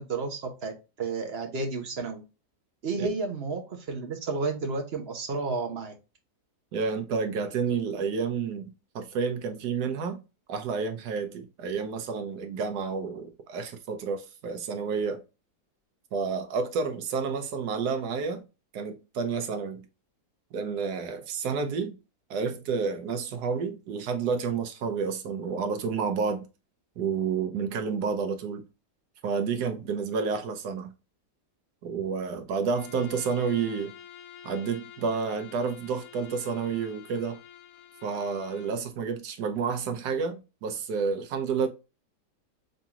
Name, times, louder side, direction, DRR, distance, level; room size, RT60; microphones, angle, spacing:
voice 1, 0.0-2.2 2.8-5.9, right 3 dB, 50° right, 0.9 m, -32 dB
voice 2, 6.7-10.2 10.5-15.2 16.1-18.4 18.7-19.9 20.5-22.0 22.3-26.4 27.0-28.7 29.2-30.9 31.8-33.9 34.4-37.4 38.0-41.7, right 5 dB, 85° right, 1.3 m, -30 dB
Bowed string instrument, 32.6-38.8, left 10 dB, 65° left, 0.9 m, -49 dB
3.9 x 3.6 x 2.8 m
omnidirectional pair, 1.7 m